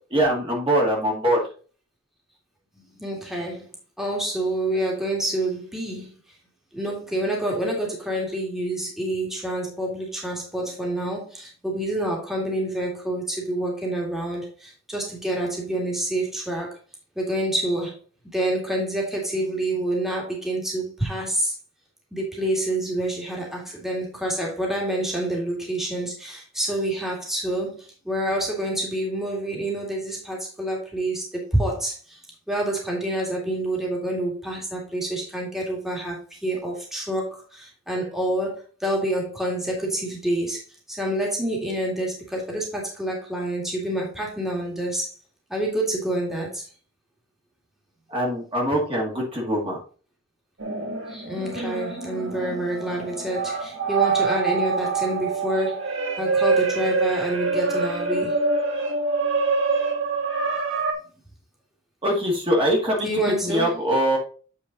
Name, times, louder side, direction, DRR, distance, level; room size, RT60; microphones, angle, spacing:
voice 1, 0.1-1.4 48.1-49.8 62.0-63.1 63.4-64.2, equal, 25° right, 2.1 m, -22 dB
voice 2, 3.0-3.7 4.0-6.1 6.7-16.8 17.2-18.0 18.3-21.5 22.1-32.2 32.5-40.6 40.9-45.1 45.5-46.6 51.1-58.4 63.0-63.8, right 1 dB, ahead, 2.1 m, -27 dB
sound 1, 50.6-60.9, right 4 dB, 65° right, 1.7 m, -25 dB
8.5 x 4.5 x 4.0 m
head